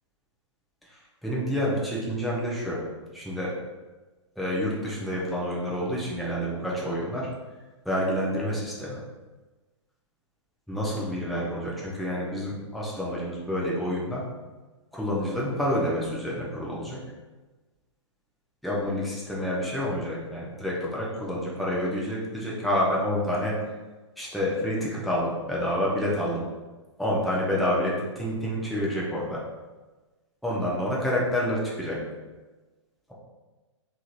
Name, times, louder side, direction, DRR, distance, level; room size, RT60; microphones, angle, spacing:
voice 1, 1.2-2.8 3.1-3.5 4.4-7.3 7.8-9.0 10.7-14.2 14.9-17.0 18.6-23.6 24.2-26.4 27.0-29.4 30.4-32.0, equal, ahead, -6 dB, 0.7 m, -28 dB
3.7 x 3.1 x 2.5 m, 1.2 s
figure-of-eight pair, 115°, 16 cm